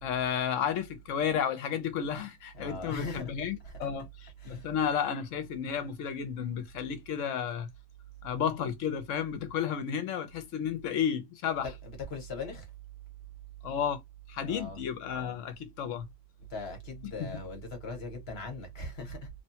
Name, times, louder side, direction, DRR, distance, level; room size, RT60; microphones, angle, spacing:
voice 1, 0.0-4.1 4.4-7.7 8.2-11.7 13.6-14.0 14.3-16.1 17.2-17.3, left 8 dB, 75° left, 1.0 m, -32 dB
voice 2, 2.6-3.3 3.6-3.9 4.4-4.7 11.8-12.7 14.5-14.8 16.5-19.3, left 2 dB, 55° left, 1.3 m, -40 dB
3.1 x 2.2 x 2.8 m
omnidirectional pair, 1.3 m